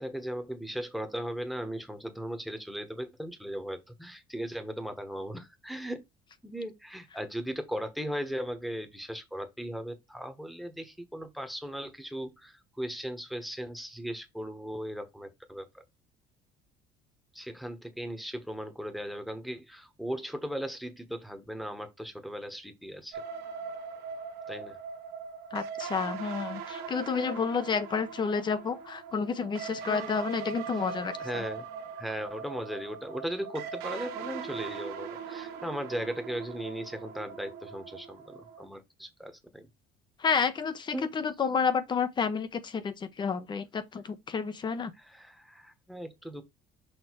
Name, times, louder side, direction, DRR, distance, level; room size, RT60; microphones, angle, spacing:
voice 1, 0.0-6.0 6.4-15.7 17.3-23.2 24.5-24.8 29.8-30.2 31.2-31.6 32.0-39.7 40.9-41.1 45.0-46.5, equal, ahead, 1.3 m, -37 dB
sound 1, 23.1-38.7, right 6 dB, 80° right, 1.2 m, -40 dB
voice 2, 25.5-31.4 40.2-44.9, left 5 dB, 30° left, 0.9 m, -30 dB
6.5 x 3.1 x 4.6 m
cardioid pair, 130°, 16 cm